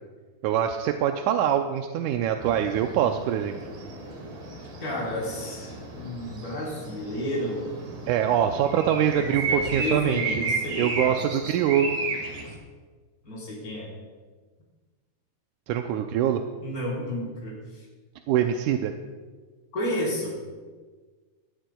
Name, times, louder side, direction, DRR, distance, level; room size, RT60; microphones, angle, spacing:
voice 1, 0.4-3.6 8.1-10.4 10.8-12.0 15.7-16.4 18.3-18.9, right 9 dB, 80° right, 5 dB, 1.9 m, -24 dB
sound 1, 2.4-12.6, right 3 dB, 60° right, 3.2 m, -34 dB
voice 2, 4.8-7.7 9.1-11.2 13.2-13.9 16.6-17.9 19.7-20.4, equal, 25° left, -5 dB, 4.5 m, -32 dB
19.5 x 13.0 x 2.3 m, 1.4 s
omnidirectional pair, 3.7 m